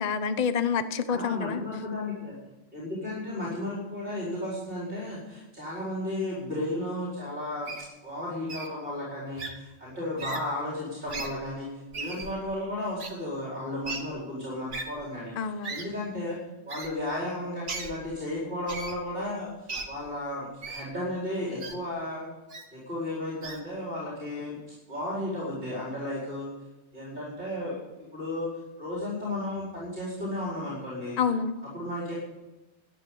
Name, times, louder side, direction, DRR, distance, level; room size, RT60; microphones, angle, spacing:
voice 1, 0.0-1.6 15.4-15.8 31.2-31.6, left 6 dB, 40° left, 11 dB, 0.8 m, -28 dB
voice 2, 1.1-2.3 2.7-7.7 8.0-11.7 11.9-16.4 16.6-22.3 22.7-24.6 24.9-26.5 26.9-27.8 28.1-28.5 28.8-31.2 31.6-32.1, left 1 dB, 45° right, -6 dB, 4.8 m, -34 dB
Wild animals, 7.7-7.9 8.5-8.7 9.4-9.5 10.2-10.4 11.1-11.3 11.9-12.3 13.0-13.1 13.8-14.0 14.7-14.8 15.6-15.8 16.7-16.9 17.7-17.9 18.7-18.9 19.7-19.8 20.6-20.8 21.6-21.7 22.5-22.6 23.4-23.6, right 3 dB, 70° right, 1.9 m, -36 dB
12.0 x 10.0 x 7.8 m, 1.0 s
omnidirectional pair, 1.3 m